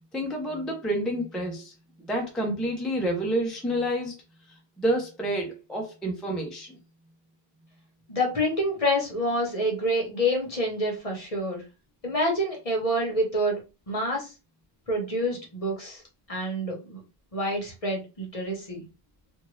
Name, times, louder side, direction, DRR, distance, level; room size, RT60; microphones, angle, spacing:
voice 1, 0.1-1.7 2.0-4.1 4.8-6.7, right 1 dB, ahead, 0 dB, 0.5 m, -28 dB
voice 2, 8.1-11.6 12.0-13.6 13.9-14.3 14.9-16.0 16.3-17.0 17.3-18.8, equal, 35° left, 0 dB, 1.0 m, -27 dB
2.6 x 2.5 x 3.1 m, 0.29 s
omnidirectional pair, 1.1 m